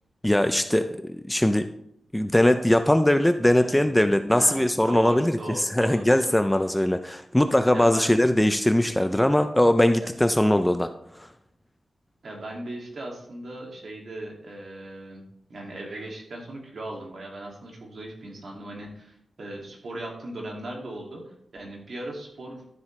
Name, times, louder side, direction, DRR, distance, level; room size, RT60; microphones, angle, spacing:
voice 1, 0.2-1.7 2.1-10.9 11.2-11.3, left 1 dB, 5° left, 9 dB, 0.4 m, -21 dB
voice 2, 3.6-3.9 4.3-6.3 7.7-8.2 12.2-15.2 15.5-22.6, right 1 dB, 55° right, 0 dB, 2.3 m, -38 dB
12.5 x 7.5 x 3.2 m, 0.72 s
wide cardioid pair, 180°, 0 cm